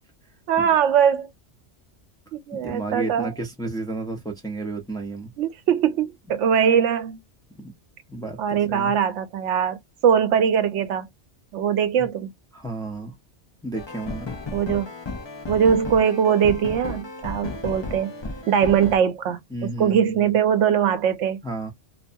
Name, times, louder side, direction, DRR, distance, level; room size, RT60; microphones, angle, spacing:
voice 1, 0.5-1.3 2.3-3.3 5.4-7.2 8.4-11.1 11.5-12.3 14.5-14.9 15.5-18.1 18.5-21.4, right 8 dB, 80° right, 0.9 m, -21 dB
voice 2, 2.5-5.3 7.6-7.7 8.1-8.9 12.0-12.1 12.5-13.1 13.6-14.3 19.5-20.3 21.4-21.7, right 2 dB, 5° left, 0.6 m, -32 dB
sound 1, 13.7-19.0, left 3 dB, 40° left, 0.4 m, -34 dB
2.6 x 2.2 x 2.5 m
omnidirectional pair, 1.2 m